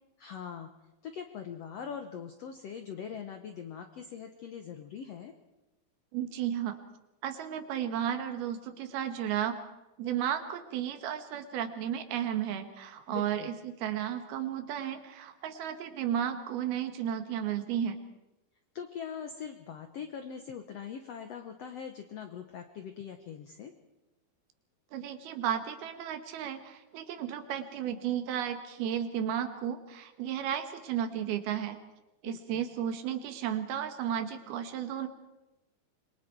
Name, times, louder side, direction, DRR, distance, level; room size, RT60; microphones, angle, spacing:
voice 1, 0.2-0.7 1.0-5.3 13.1-13.5 18.7-23.7 32.2-32.6, left 7 dB, 80° left, 7 dB, 1.4 m, -42 dB
voice 2, 6.1-6.8 7.2-9.6 10.0-18.0 24.9-31.8 32.2-35.1, right 9 dB, 85° right, 7 dB, 3.4 m, -33 dB
26.0 x 22.5 x 4.6 m, 0.98 s
omnidirectional pair, 4.3 m